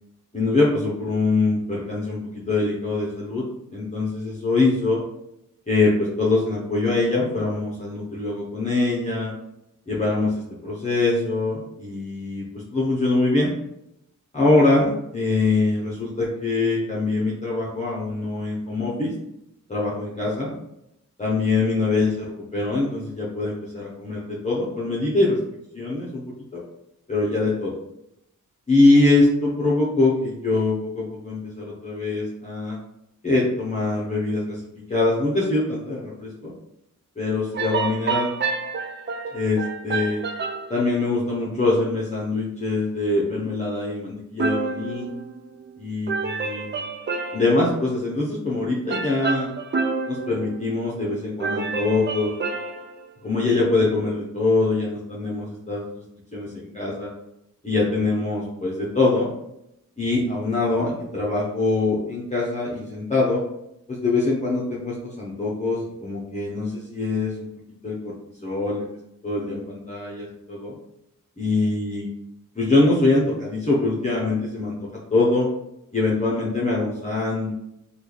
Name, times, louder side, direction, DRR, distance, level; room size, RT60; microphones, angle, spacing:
voice 1, 0.3-3.4 3.7-5.0 5.7-9.3 9.9-12.4 12.7-13.5 14.3-19.1 19.7-20.5 21.2-25.4 25.7-26.2 26.5-26.6 27.1-27.7 28.7-32.8 33.2-34.6 34.9-36.5 37.2-38.3 39.3-40.2 40.7-45.1 45.8-46.9 47.3-49.5 50.1-52.3 53.2-55.8 56.3-57.1 57.6-59.3 60.0-63.4 63.9-67.5 67.8-68.1 68.4-68.9 69.2-70.7 71.4-72.1 72.5-74.8 75.1-75.5 75.9-77.5, left 2 dB, 20° left, -6 dB, 0.7 m, -23 dB
sound 1, 37.5-40.8 44.4-45.8 46.1-47.7 48.9-51.1 51.4-53.1, right 4 dB, 35° right, 0.4 m, -29 dB
3.1 x 2.4 x 3.8 m, 0.82 s
wide cardioid pair, 120°, 33 cm